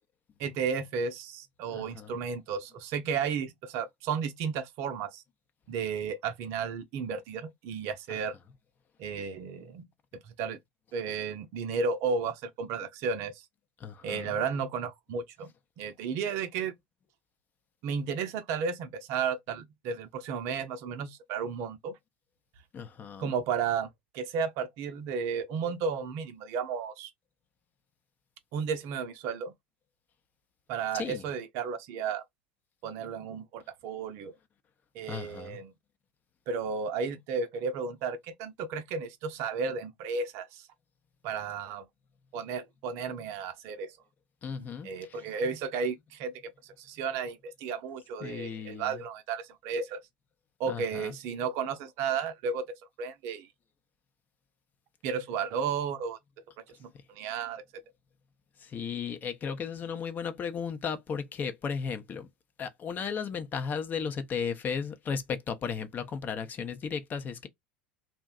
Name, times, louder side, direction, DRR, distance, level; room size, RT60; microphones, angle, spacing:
voice 1, 0.4-5.2 5.7-8.3 9.0-9.8 10.4-10.6 10.9-13.4 14.0-15.5 15.8-16.7 17.8-21.9 23.2-27.1 28.5-29.5 30.7-32.2 32.8-34.3 34.9-35.7 36.5-40.7 41.2-41.9 42.3-44.0 44.8-46.5 46.8-50.0 50.6-53.5 55.0-56.2 56.8-57.8, right 6 dB, 55° right, 0.6 m, -33 dB
voice 2, 1.7-2.1 8.1-8.2 13.8-14.4 22.7-23.3 30.9-31.2 35.1-35.6 44.4-45.2 48.2-49.0 50.7-51.1 58.6-62.3 62.6-67.5, left 6 dB, 35° left, 0.6 m, -35 dB
2.6 x 2.1 x 2.3 m
hypercardioid pair, 80°, 6 cm